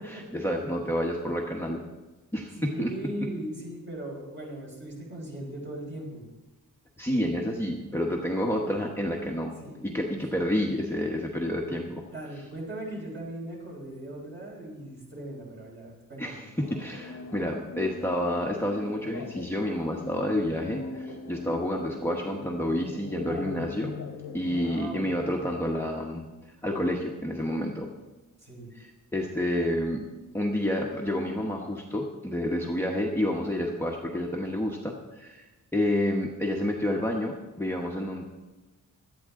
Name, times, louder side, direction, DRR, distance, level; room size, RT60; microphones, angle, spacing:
voice 1, 0.0-1.8 2.3-2.9 7.0-9.5 9.8-12.0 16.2-23.9 24.3-26.2 26.6-27.9 28.7-30.0 30.3-35.5 35.7-38.3, left 1 dB, 5° left, -2 dB, 1.2 m, -29 dB
voice 2, 2.6-6.3 9.6-9.8 12.1-16.5 24.4-25.1 28.4-28.8, right 1 dB, 35° right, -2 dB, 5.0 m, -38 dB
sound 1, 16.6-24.7, left 4 dB, 85° left, 1.2 m, -41 dB
17.5 x 12.0 x 3.8 m, 1.1 s
wide cardioid pair, 155°, 32 cm